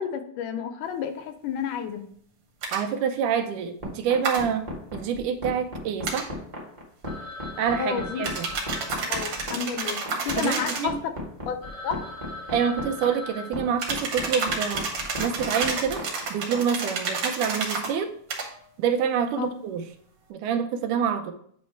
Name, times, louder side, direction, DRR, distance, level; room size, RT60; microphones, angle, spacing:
voice 1, 0.0-2.1 7.8-8.2 9.1-11.1 11.5-11.6 11.8-12.1 19.4-19.5, left 7 dB, 85° left, 7 dB, 2.3 m, -31 dB
sound 1, 2.6-2.8 4.2-4.4 6.0-6.3 8.2-10.9 13.8-17.9 18.3-18.5, right 4 dB, 55° right, 1.7 m, -30 dB
voice 2, 2.7-6.3 7.6-8.5 10.4-11.0 12.5-14.9 15.2-16.0 16.3-18.1 18.8-19.8 20.3-21.3, right 7 dB, 85° right, 6 dB, 2.2 m, -27 dB
sound 2, 3.8-16.6, left 1 dB, 25° right, 0.7 m, -35 dB
Telephone, 7.1-10.8 11.3-11.4 11.6-14.5, left 2 dB, 40° left, 0.7 m, -41 dB
9.1 x 3.2 x 4.4 m, 0.62 s
omnidirectional pair, 3.6 m